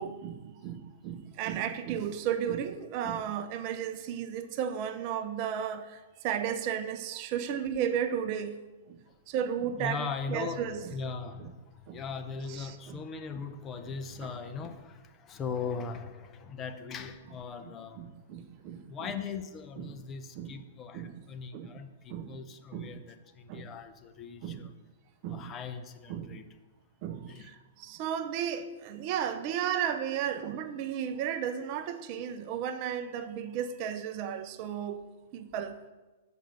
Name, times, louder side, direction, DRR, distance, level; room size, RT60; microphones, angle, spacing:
voice 1, 0.0-8.6 8.9-9.0 9.3-10.8 11.9-12.0 12.5-13.0 14.2-14.3 18.0-18.8 19.8-19.9 20.4-20.5 20.9-21.1 21.5-21.7 22.1-22.4 22.7-23.0 23.5-23.7 24.4-24.7 25.2-25.5 26.1-26.4 27.0-35.1 35.3-35.8, right 9 dB, 45° right, 0.6 m, -34 dB
voice 2, 9.8-18.1 18.9-24.7 25.2-26.5 27.3-27.5, left 5 dB, 25° left, 0.7 m, -39 dB
7.4 x 5.2 x 6.6 m
hypercardioid pair, 125°, 0 cm